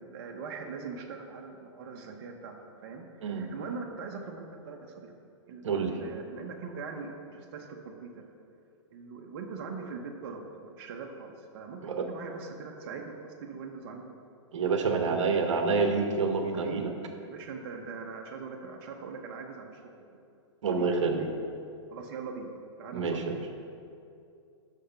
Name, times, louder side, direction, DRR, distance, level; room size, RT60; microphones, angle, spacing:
voice 1, 0.0-2.6 2.8-8.3 8.9-14.1 16.5-16.9 17.2-20.2 20.7-20.9 21.9-22.5 22.8-23.2, right 5 dB, 50° right, 2 dB, 0.9 m, -42 dB
voice 2, 5.6-6.0 11.8-12.1 14.5-16.9 20.6-21.3 22.9-23.4, right 4 dB, 75° right, 4 dB, 1.0 m, -27 dB
6.4 x 6.3 x 5.7 m, 2.5 s
hypercardioid pair, 135°, 16 cm